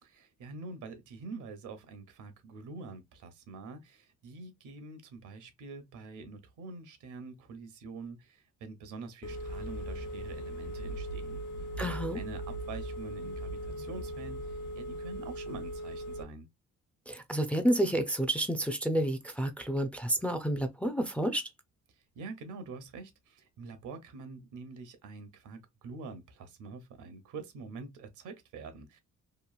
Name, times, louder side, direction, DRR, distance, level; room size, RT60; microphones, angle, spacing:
voice 1, 0.0-11.4 11.8-11.9 12.1-16.5 22.1-29.0, right 4 dB, 80° right, 0.8 m, -45 dB
Telephone, 9.2-16.2, right 1 dB, 90° left, 0.6 m, -39 dB
voice 2, 11.8-12.2 17.1-21.5, right 1 dB, 5° left, 0.4 m, -30 dB
3.0 x 2.4 x 2.3 m
cardioid pair, 90°, 30 cm